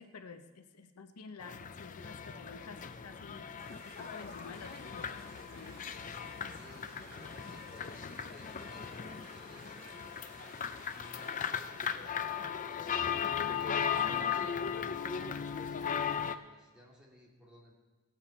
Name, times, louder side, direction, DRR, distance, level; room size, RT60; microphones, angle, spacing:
voice 1, 0.0-3.5 3.7-5.2 5.6-5.9 6.3-6.5, left 4 dB, 90° left, 8 dB, 0.8 m, -50 dB
sound 1, 1.4-16.3, left 7 dB, 35° left, 0.5 m, -37 dB
sound 2, 3.6-11.4, right 3 dB, 75° right, 2.5 m, -57 dB
voice 2, 6.0-14.8 15.1-17.7, left 1 dB, 5° right, -5 dB, 2.8 m, -59 dB
18.0 x 8.5 x 4.3 m, 1.2 s
head